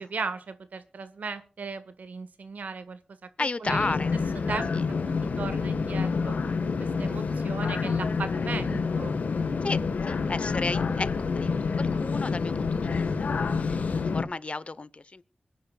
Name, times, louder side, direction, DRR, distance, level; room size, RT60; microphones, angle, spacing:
voice 1, 0.0-3.9 4.5-6.4 6.8-9.1, right 4 dB, 90° right, 1.5 m, -37 dB
voice 2, 3.4-4.1 7.0-7.4 9.6-15.2, left 3 dB, 50° left, 0.9 m, -34 dB
sound 1, 3.7-14.2, left 4 dB, 90° left, 1.4 m, -28 dB
25.0 x 10.0 x 2.3 m
cardioid pair, 50°, 3 cm